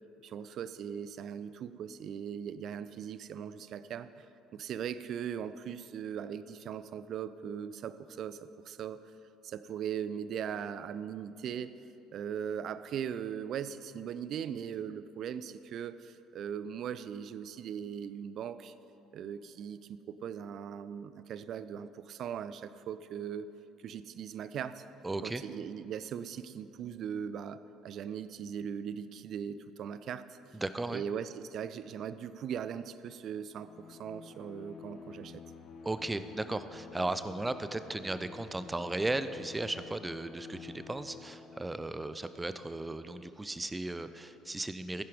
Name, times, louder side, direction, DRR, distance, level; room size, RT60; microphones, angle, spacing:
voice 1, 0.2-4.2 4.5-8.4 8.7-9.0 9.4-11.7 12.1-18.7 19.1-23.5 23.8-24.8 25.2-30.4 30.9-35.4, right 8 dB, 50° right, 14 dB, 0.5 m, -39 dB
voice 2, 25.0-25.4 30.5-31.0 35.8-45.0, right 2 dB, 15° right, 12 dB, 0.7 m, -36 dB
Bowed string instrument, 33.5-42.1, left 6 dB, 45° left, 1.0 m, -50 dB
15.5 x 10.5 x 5.0 m, 2.8 s
figure-of-eight pair, 55°, 0 cm